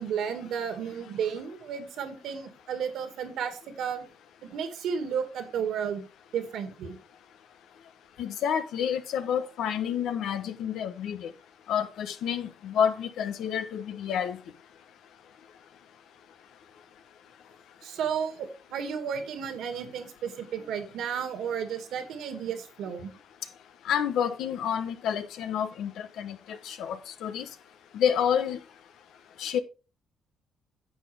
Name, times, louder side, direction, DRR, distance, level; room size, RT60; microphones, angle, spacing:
voice 1, 0.0-4.1 4.4-6.0 6.3-7.0 17.8-23.1, right 7 dB, 80° right, 2.3 m, -33 dB
voice 2, 8.2-11.3 11.7-14.4 23.8-27.5 27.9-28.6 29.4-29.6, left 8 dB, 80° left, 1.2 m, -29 dB
10.0 x 7.4 x 3.6 m
cardioid pair, 90°, 0 cm